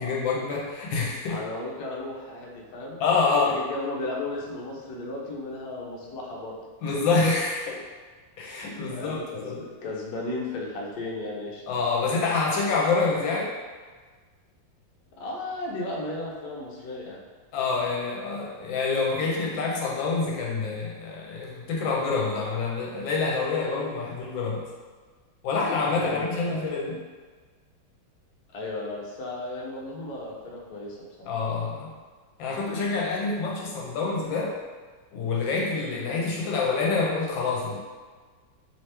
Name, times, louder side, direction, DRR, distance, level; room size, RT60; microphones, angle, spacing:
voice 1, 0.0-1.4 3.0-3.6 6.8-7.8 8.4-9.6 11.7-13.5 17.5-24.6 25.4-26.9 31.3-31.9 32.4-34.6 35.1-37.8, left 4 dB, 80° left, -3 dB, 1.4 m, -27 dB
voice 2, 1.3-3.0 3.4-6.5 8.9-11.6 15.2-17.2 25.8-26.6 28.5-31.3, left 2 dB, 60° left, -3 dB, 1.1 m, -35 dB
3.3 x 3.0 x 3.2 m, 1.4 s
omnidirectional pair, 2.1 m